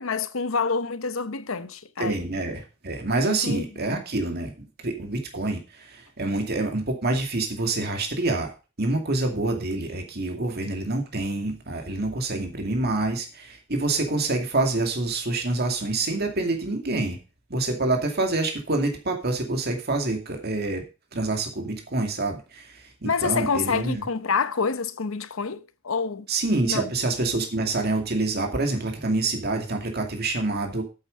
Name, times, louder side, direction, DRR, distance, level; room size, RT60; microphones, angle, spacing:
voice 1, 0.0-2.2 3.2-4.0 23.0-26.3 26.6-26.9, left 5 dB, 70° left, 0.8 m, -27 dB
voice 2, 2.0-8.5 8.8-17.2 17.5-20.8 21.1-24.0 26.3-30.8, right 2 dB, 50° right, 2.3 m, -27 dB
8.5 x 8.1 x 5.3 m
head